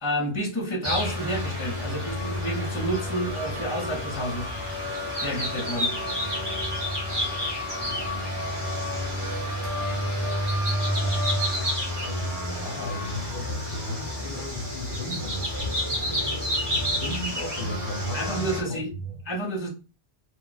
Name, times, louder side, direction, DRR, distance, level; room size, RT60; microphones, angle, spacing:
voice 1, 0.0-4.5 5.2-5.9 18.1-18.9 19.2-19.7, equal, 30° left, 0.9 m, -30 dB
sound 1, 0.8-18.6, left 1 dB, 25° right, 1.2 m, -29 dB
voice 2, 7.9-8.7 9.6-9.7 10.8-11.7 12.0-15.8 16.7-19.1, equal, 55° left, 0.9 m, -35 dB
2.4 x 2.3 x 3.9 m
omnidirectional pair, 1.1 m